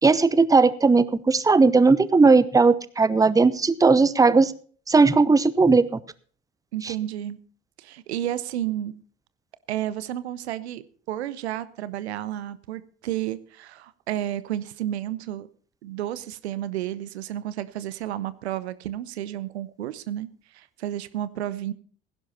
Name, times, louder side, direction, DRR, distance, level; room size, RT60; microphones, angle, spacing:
voice 1, 0.0-4.5 4.9-6.0 6.8-6.9, right 4 dB, 10° right, 0.8 m, -18 dB
voice 2, 6.7-7.4 7.8-8.9 9.7-15.5 15.8-20.3 20.5-21.7, right 12 dB, 80° right, 0.8 m, -31 dB
16.0 x 11.0 x 4.2 m
hypercardioid pair, 65°, 32 cm